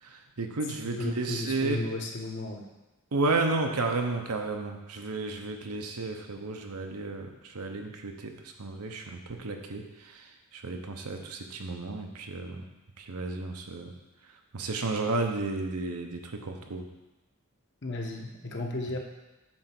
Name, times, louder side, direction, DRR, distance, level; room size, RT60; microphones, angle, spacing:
voice 1, 0.0-1.8 3.1-12.6 13.0-13.9 14.5-16.8, right 3 dB, 90° right, 4 dB, 0.9 m, -32 dB
voice 2, 1.0-2.7 17.8-19.0, left 2 dB, 50° left, 1 dB, 1.0 m, -34 dB
8.7 x 3.3 x 6.0 m, 1.0 s
head